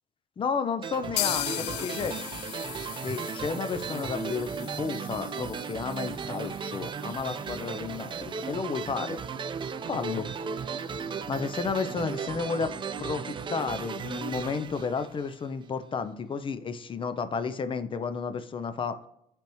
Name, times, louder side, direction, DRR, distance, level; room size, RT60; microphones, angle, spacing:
voice 1, 0.4-2.2 3.0-9.2 9.9-10.3 11.3-12.7 13.0-19.0, left 5 dB, 30° left, 11 dB, 0.5 m, -32 dB
sound 1, 0.8-15.7, right 6 dB, 30° right, 0.4 m, -36 dB
sound 2, 1.2-8.9 9.2-9.3 9.6-9.7 10.1-10.2, left 14 dB, 85° left, 0.4 m, -38 dB
10.5 x 3.5 x 3.0 m, 0.75 s
cardioid pair, 110°, 17 cm